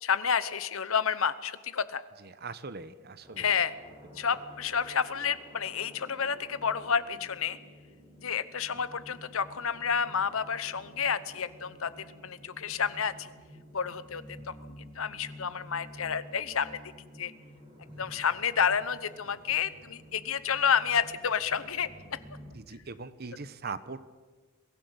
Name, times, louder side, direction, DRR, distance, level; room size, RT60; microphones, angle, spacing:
voice 1, 0.0-2.0 3.4-3.7 4.1-7.6 8.2-13.3 13.7-16.8 17.2-17.3 18.0-21.9, left 7 dB, 70° left, 15 dB, 0.9 m, -30 dB
voice 2, 2.2-3.5 14.4-14.5 22.5-24.1, right 4 dB, 45° right, 13 dB, 1.0 m, -41 dB
sound 1, 3.2-22.5, equal, 20° right, 7.4 m, -51 dB
23.0 x 15.5 x 8.1 m, 1.4 s
head